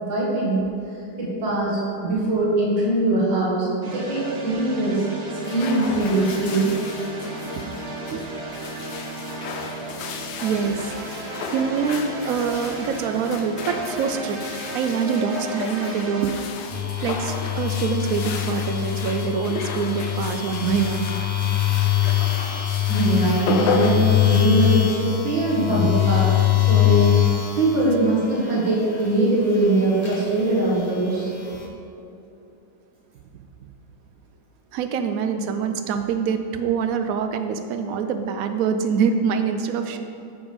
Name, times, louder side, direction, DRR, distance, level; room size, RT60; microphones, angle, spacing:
voice 1, 0.1-0.6 1.2-5.0 5.5-6.7 22.9-27.1 27.6-31.3, right 2 dB, 90° right, -6 dB, 2.4 m, -22 dB
sound 1, 3.8-16.3, right 2 dB, 40° right, 1.3 m, -34 dB
sound 2, 5.3-24.9, left 4 dB, 85° left, 1.4 m, -33 dB
voice 2, 10.4-10.9 11.5-14.4 14.7-16.4 17.0-21.1 34.7-40.0, right 6 dB, 65° right, 7 dB, 0.9 m, -25 dB
sound 3, 16.7-29.1 29.5-31.7, left 12 dB, 45° left, 0.8 m, -23 dB
10.5 x 7.0 x 3.5 m, 2.8 s
omnidirectional pair, 2.0 m